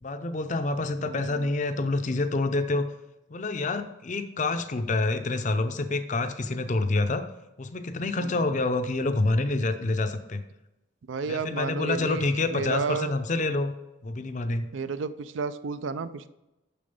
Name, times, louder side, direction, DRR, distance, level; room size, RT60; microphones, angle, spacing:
voice 1, 0.0-2.9 3.3-7.2 7.6-10.4 11.3-13.7 14.0-14.7, left 2 dB, 40° left, 9 dB, 0.5 m, -27 dB
voice 2, 1.0-1.5 8.2-8.3 11.1-13.1 14.7-16.3, right 5 dB, 70° right, 14 dB, 0.4 m, -32 dB
6.8 x 6.2 x 5.3 m, 0.97 s
head